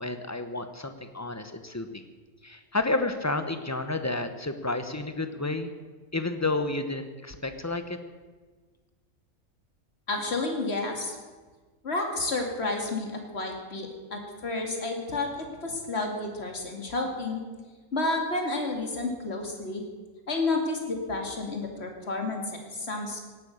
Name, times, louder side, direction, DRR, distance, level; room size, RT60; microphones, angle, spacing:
voice 1, 0.0-2.0 2.4-5.7 6.1-8.0, left 2 dB, 15° left, 8 dB, 0.9 m, -31 dB
voice 2, 10.1-11.2 11.8-17.4 17.9-19.8 20.3-23.2, left 2 dB, 50° left, 2 dB, 2.7 m, -31 dB
17.5 x 11.5 x 6.6 m, 1.4 s
omnidirectional pair, 1.4 m